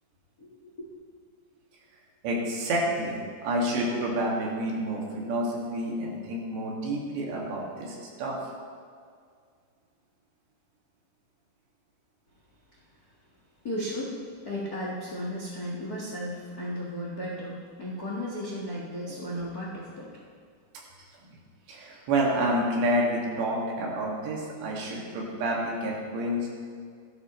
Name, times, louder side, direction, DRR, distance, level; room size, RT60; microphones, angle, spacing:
voice 1, 0.4-1.0 13.6-14.2 14.4-20.1 21.9-22.0, equal, 70° left, -5 dB, 0.8 m, -35 dB
voice 2, 2.2-8.4 21.7-26.5, right 1 dB, 85° right, -3 dB, 4.3 m, -29 dB
16.5 x 12.5 x 3.2 m, 2.1 s
omnidirectional pair, 4.9 m